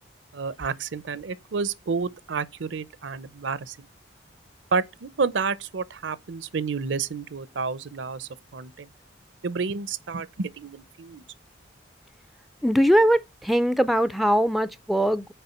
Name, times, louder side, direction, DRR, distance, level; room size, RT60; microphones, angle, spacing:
voice 1, 0.3-3.9 4.7-8.9 9.4-11.2, right 5 dB, 75° right, 0.6 m, -30 dB
voice 2, 12.6-15.3, equal, ahead, 0.4 m, -21 dB
6.8 x 4.7 x 5.6 m
head